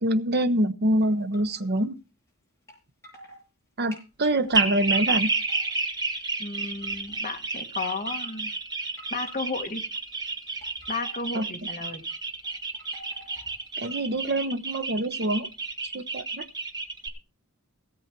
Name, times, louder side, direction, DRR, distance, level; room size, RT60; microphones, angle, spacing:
voice 1, 0.0-2.0 3.8-5.3 11.3-11.5 13.8-15.5 15.8-16.5, right 1 dB, 50° right, 10 dB, 1.0 m, -25 dB
sound 1, 1.0-1.8 2.7-2.8 3.0-3.4 3.9-5.0 5.3-6.0 6.7-7.2 7.7-8.4 9.0-9.8 10.4-11.3 11.8-12.1 12.4-14.3, equal, 15° left, 7.6 m, -50 dB
sound 2, 4.5-17.1, right 3 dB, 20° right, 1.6 m, -30 dB
voice 2, 6.4-8.5 9.1-9.9 10.9-12.0, left 3 dB, 35° left, 4 dB, 1.8 m, -33 dB
17.0 x 7.9 x 4.5 m, 0.31 s
head